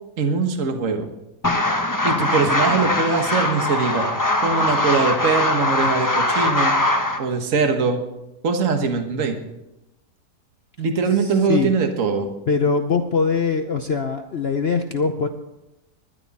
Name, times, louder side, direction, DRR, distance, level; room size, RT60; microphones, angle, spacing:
voice 1, 0.2-1.1 2.0-4.1 4.4-6.7 7.2-8.0 8.4-9.4 10.8-12.3, right 4 dB, 50° right, 5 dB, 1.7 m, -22 dB
sound 1, 1.4-7.2, left 1 dB, 15° left, 0.8 m, -21 dB
voice 2, 11.2-11.7 12.5-15.3, left 5 dB, 50° left, 6 dB, 0.8 m, -22 dB
20.5 x 11.5 x 4.2 m, 0.92 s
omnidirectional pair, 1.8 m